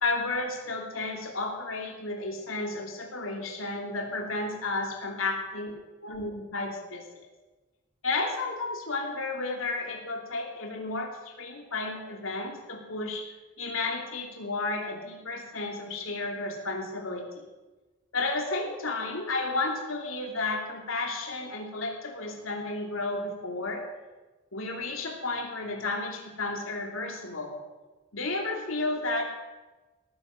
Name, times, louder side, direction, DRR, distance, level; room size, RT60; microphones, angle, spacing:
voice 1, 0.0-5.7 6.0-7.1 8.0-13.3 13.6-17.5 18.1-23.9 24.5-27.6 28.1-29.2, left 3 dB, 80° left, 2 dB, 2.8 m, -32 dB
18.0 x 9.7 x 6.3 m, 1.2 s
head